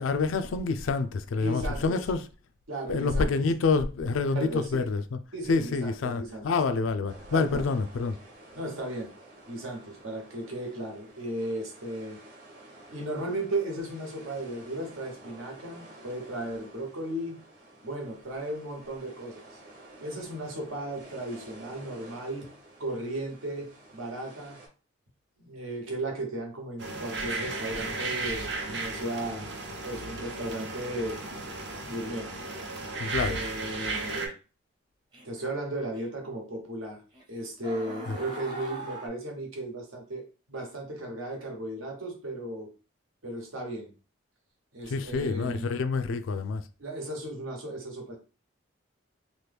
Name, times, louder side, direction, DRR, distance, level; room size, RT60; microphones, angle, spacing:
voice 1, 0.0-2.3 2.9-5.2 5.5-8.2 33.0-33.4 38.1-38.2 44.9-46.6, left 4 dB, 75° left, 0.4 m, -27 dB
voice 2, 1.4-2.0 2.7-3.3 4.3-4.7 5.3-6.4 7.3-7.7 8.6-9.1 9.5-12.2 12.9-17.4 17.8-19.6 20.0-22.5 22.8-24.6 25.4-29.5 29.8-31.2 31.8-32.3 33.2-34.4 35.2-37.0 37.3-42.7 43.2-43.9 44.7-45.7 46.8-48.1, right 1 dB, 85° right, 1.1 m, -35 dB
sound 1, 7.1-24.7, right 2 dB, 45° right, 1.0 m, -51 dB
sound 2, 26.8-34.3, right 3 dB, 60° right, 0.7 m, -35 dB
sound 3, 35.1-35.4 36.0-36.1 37.1-37.2 37.6-39.1, right 2 dB, 20° right, 0.7 m, -40 dB
3.0 x 2.2 x 3.4 m
head